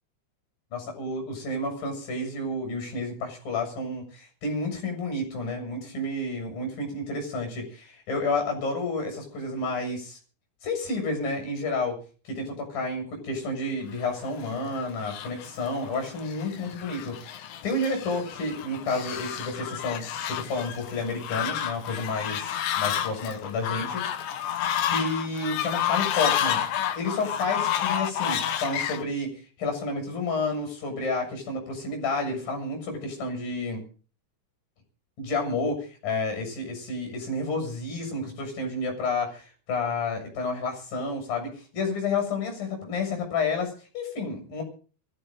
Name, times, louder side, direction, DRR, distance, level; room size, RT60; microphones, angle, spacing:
voice 1, 0.7-10.2 10.6-12.0 12.3-24.5 24.9-26.6 27.0-29.3 29.6-33.8 35.2-44.6, left 3 dB, 45° left, 3 dB, 8.8 m, -30 dB
Fowl, 14.2-29.0, left 10 dB, 75° left, 3.6 m, -30 dB
24.0 x 14.0 x 3.9 m, 0.39 s
omnidirectional pair, 5.8 m